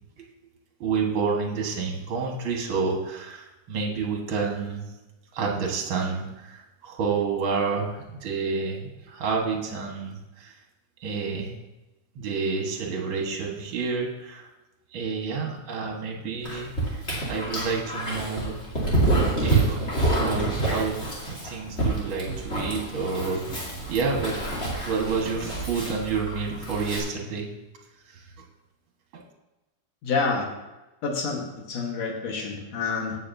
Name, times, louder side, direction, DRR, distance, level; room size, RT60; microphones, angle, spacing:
voice 1, 0.8-4.9 5.3-10.5 11.0-11.5 12.2-14.5 14.9-18.6 19.4-21.0 21.2-24.4 24.8-27.5 28.1-28.2 29.1-29.2, right 5 dB, 50° right, 0 dB, 1.9 m, -29 dB
Dog, 16.4-27.0, right 2 dB, 20° left, 2.6 m, -27 dB
voice 2, 30.0-30.5 31.0-33.2, left 4 dB, 60° left, 1 dB, 2.5 m, -28 dB
16.5 x 7.0 x 2.7 m, 1.0 s
omnidirectional pair, 3.5 m